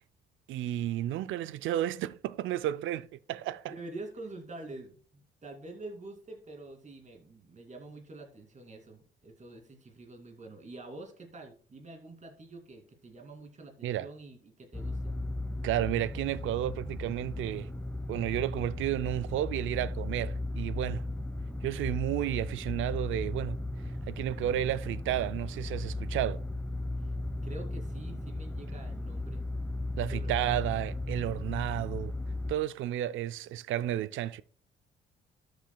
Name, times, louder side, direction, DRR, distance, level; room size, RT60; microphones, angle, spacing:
voice 1, 0.5-3.7 13.8-14.1 15.6-17.7 18.1-21.1 21.6-23.6 24.1-26.4 30.0-32.1 32.5-34.4, right 12 dB, 80° right, 0.5 m, -32 dB
voice 2, 3.7-15.1 27.0-27.1 27.4-29.4 30.0-30.6, right 2 dB, 35° right, 2.6 m, -46 dB
sound 1, 14.7-32.5, left 2 dB, 5° left, 1.1 m, -36 dB
13.0 x 7.6 x 2.3 m
cardioid pair, 90°, 20 cm